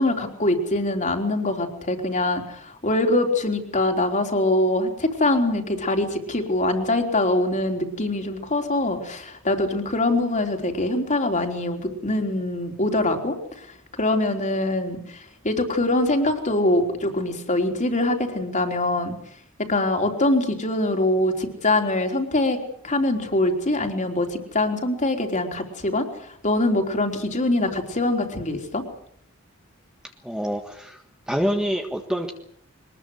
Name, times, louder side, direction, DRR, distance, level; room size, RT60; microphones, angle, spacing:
voice 1, 0.0-13.7 13.9-19.2 19.6-26.1 26.4-28.8, left 2 dB, 35° left, 4 dB, 3.7 m, -23 dB
voice 2, 30.2-32.3, equal, 5° right, 4 dB, 1.5 m, -26 dB
23.0 x 20.5 x 8.1 m, 0.66 s
head